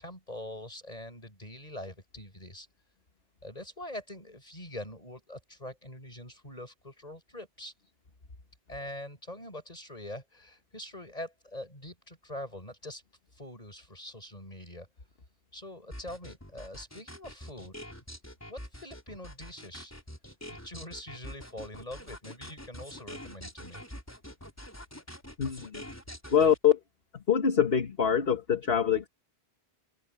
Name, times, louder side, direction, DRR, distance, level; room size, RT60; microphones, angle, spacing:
voice 1, 0.0-2.7 3.4-7.7 8.7-13.0 13.3-14.9 15.5-17.8 18.5-19.9 20.5-23.8, left 1 dB, 35° left, 8.0 m, -44 dB
sound 1, 15.9-26.6, equal, 15° left, 3.9 m, -45 dB
voice 2, 25.4-25.9 26.3-26.8 27.1-29.1, left 8 dB, 65° left, 1.8 m, -25 dB
omnidirectional pair, 1.1 m